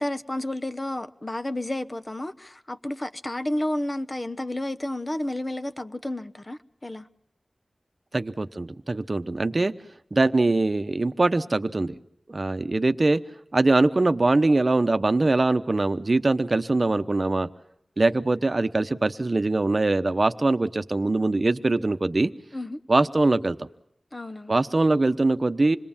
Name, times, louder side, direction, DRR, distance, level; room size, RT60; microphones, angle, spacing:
voice 1, 0.0-7.1 22.5-22.8 24.1-24.6, left 1 dB, 30° left, 0.9 m, -31 dB
voice 2, 8.1-9.7 10.1-11.9 12.3-13.2 13.5-17.5 18.0-22.3 22.9-23.7 24.5-25.8, right 2 dB, 45° right, 1.0 m, -22 dB
27.0 x 21.5 x 7.4 m
wide cardioid pair, 80°, 0 cm